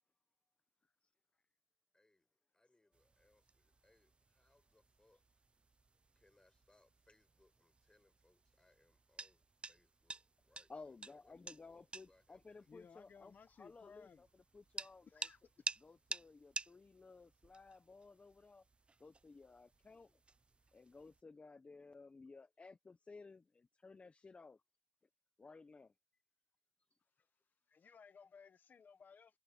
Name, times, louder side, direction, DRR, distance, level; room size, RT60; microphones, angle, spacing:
voice 1, 1.9-5.2 6.1-11.4 11.7-12.7, left 2 dB, 20° left, 4.8 m, -74 dB
sound 1, 2.9-21.2, right 3 dB, 35° right, 0.4 m, -52 dB
voice 2, 10.7-13.3 13.6-14.3 14.5-15.3 15.8-18.6 19.0-20.2 20.7-24.6 25.4-25.9, left 4 dB, 45° left, 0.7 m, -57 dB
voice 3, 12.7-14.2 15.0-15.8 27.2-27.3 27.7-29.4, left 6 dB, 85° left, 1.0 m, -60 dB
wide cardioid pair, 95°, 3 cm